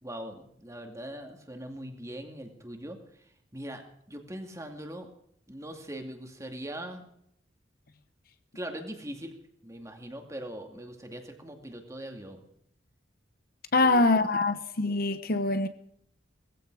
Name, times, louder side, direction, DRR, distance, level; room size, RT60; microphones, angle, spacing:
voice 1, 0.0-3.0 3.5-5.1 5.5-7.1 8.5-9.4 9.6-12.4 13.8-14.1, right 1 dB, 15° right, 2.4 m, -41 dB
voice 2, 13.7-15.7, left 2 dB, 50° left, 1.0 m, -24 dB
19.5 x 15.5 x 4.8 m
head